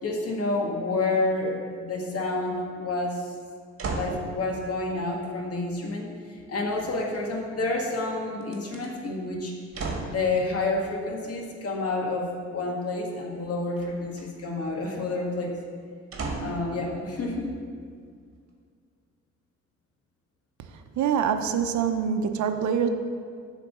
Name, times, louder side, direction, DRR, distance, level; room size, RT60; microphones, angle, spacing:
voice 1, 0.0-3.3 3.9-6.1 6.5-9.5 10.1-15.6 16.4-17.5, left 2 dB, 50° left, 0 dB, 1.7 m, -29 dB
sound 1, 3.8-4.2 6.7-7.5 8.4-8.9 9.7-10.2 13.8-14.3 16.1-16.7 17.3-17.4, right 3 dB, 45° right, 1.6 m, -34 dB
voice 2, 21.0-22.9, right 7 dB, 70° right, 7 dB, 0.8 m, -25 dB
10.0 x 4.0 x 6.7 m, 2.1 s
cardioid pair, 90°, 30 cm